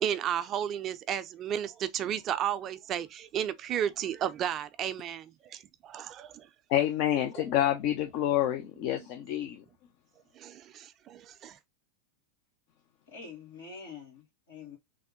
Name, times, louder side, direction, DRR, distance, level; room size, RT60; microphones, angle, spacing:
voice 1, 0.0-6.5 10.4-11.6, right 10 dB, 40° right, 0.4 m, -33 dB
voice 2, 6.7-9.6, left 12 dB, 55° left, 0.5 m, -28 dB
voice 3, 13.1-14.8, left 5 dB, 80° left, 1.6 m, -46 dB
3.4 x 2.1 x 3.6 m
hypercardioid pair, 90°, 0 cm